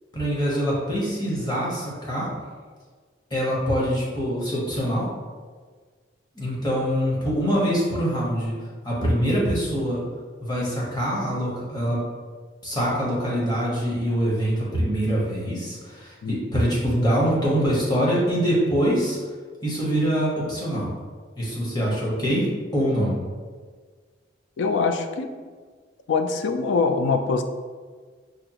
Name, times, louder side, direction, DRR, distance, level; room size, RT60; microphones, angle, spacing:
voice 1, 0.1-2.3 3.3-5.1 6.3-8.5 8.8-10.0 10.4-12.0 12.6-19.2 19.6-20.9 21.4-22.5 22.7-23.1, equal, 20° left, -5 dB, 0.9 m, -24 dB
voice 2, 24.6-25.3 26.1-27.4, left 4 dB, 70° left, 7 dB, 0.3 m, -23 dB
5.1 x 2.3 x 2.8 m, 1.5 s
head